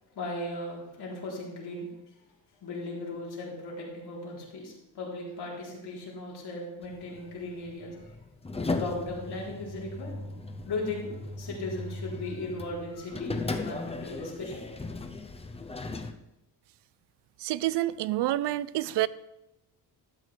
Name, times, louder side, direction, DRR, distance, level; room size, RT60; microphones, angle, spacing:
voice 1, 0.1-1.9 2.6-8.1 8.8-10.1 10.6-14.7, left 2 dB, 60° left, 3.7 m, -37 dB
sound 1, 6.8-16.1, left 3 dB, 15° left, 0.6 m, -37 dB
voice 2, 17.4-19.1, right 15 dB, 70° right, 0.5 m, -28 dB
12.0 x 8.2 x 3.3 m
cardioid pair, 115°, 43 cm